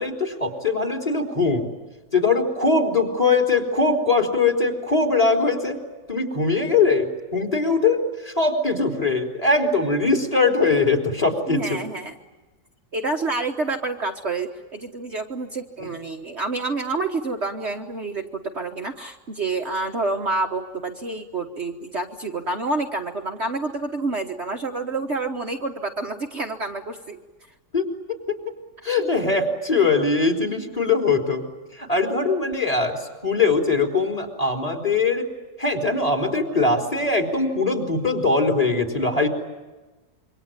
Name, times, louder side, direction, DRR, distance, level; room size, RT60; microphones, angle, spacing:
voice 1, 0.0-1.7 2.1-5.8 6.1-11.8 15.8-15.9 27.7-28.4 28.8-31.5 31.7-35.3 35.6-39.3, left 3 dB, 20° left, 5 dB, 3.7 m, -21 dB
voice 2, 11.5-12.2 12.9-27.2 29.0-29.1, right 3 dB, 45° right, 3 dB, 1.5 m, -28 dB
27.0 x 24.0 x 9.0 m, 1.2 s
omnidirectional pair, 1.7 m